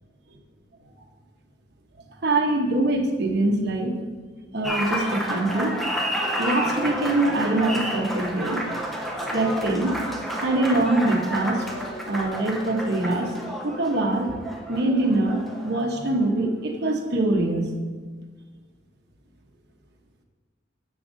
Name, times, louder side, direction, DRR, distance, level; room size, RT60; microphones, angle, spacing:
voice 1, 2.2-4.0 4.5-5.8 6.4-8.6 9.3-9.9 10.4-11.7 12.1-13.3 13.6-14.3 14.7-17.7, right 2 dB, 60° right, 1 dB, 1.0 m, -23 dB
Applause, 4.6-16.4, equal, ahead, 0.7 m, -30 dB
9.9 x 7.2 x 2.7 m, 1.4 s
head